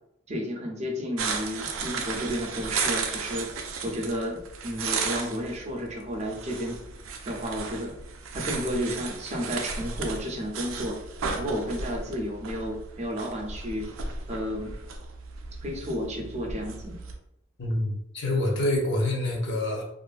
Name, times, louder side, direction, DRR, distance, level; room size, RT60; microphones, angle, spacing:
voice 1, 0.3-3.5 3.8-6.8 7.2-7.9 8.3-11.0 11.3-13.9 14.3-14.7 15.6-17.0, equal, 35° right, 0 dB, 0.5 m, -32 dB
sound 1, 1.2-17.2, right 4 dB, 85° right, 0.4 m, -35 dB
voice 2, 17.6-19.8, left 1 dB, 65° left, -1 dB, 0.6 m, -26 dB
2.5 x 2.3 x 2.4 m, 0.80 s
head